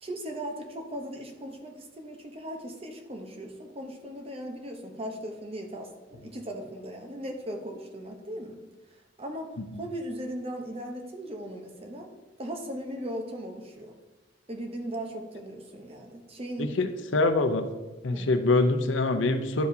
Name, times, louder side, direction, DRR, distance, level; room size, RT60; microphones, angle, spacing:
voice 1, 0.0-8.6 8.9-12.1 12.4-14.0 14.5-16.8 18.1-18.3, equal, 30° right, 3 dB, 0.9 m, -38 dB
voice 2, 16.6-17.6 18.0-19.7, left 2 dB, 75° left, 7 dB, 0.6 m, -24 dB
11.5 x 4.7 x 2.7 m, 1.1 s
head